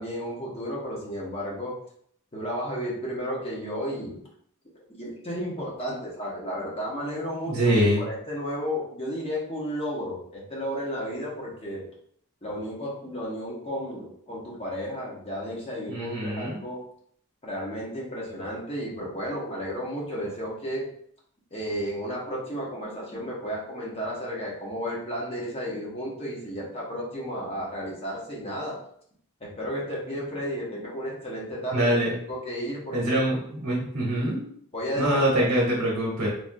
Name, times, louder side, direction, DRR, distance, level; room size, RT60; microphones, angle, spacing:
voice 1, 0.0-1.8 2.3-4.3 4.9-11.9 12.4-16.8 17.4-20.9 21.5-28.8 29.4-31.9 32.3-33.2 34.7-35.5, equal, 25° left, -4 dB, 0.8 m, -33 dB
voice 2, 7.5-8.0 15.9-16.6 31.7-32.2 32.9-34.4 35.0-36.3, right 1 dB, 65° right, -5 dB, 0.9 m, -24 dB
3.3 x 2.4 x 2.5 m, 0.64 s
head